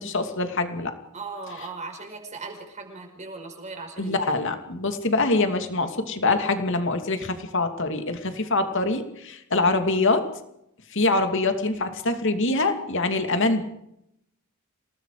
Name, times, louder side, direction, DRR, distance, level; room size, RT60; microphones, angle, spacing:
voice 1, 0.0-0.9 4.0-10.2 10.9-13.6, left 2 dB, 60° left, 7 dB, 2.6 m, -24 dB
voice 2, 1.1-4.5, right 3 dB, 35° right, 3 dB, 5.0 m, -38 dB
27.5 x 19.0 x 5.0 m, 0.78 s
head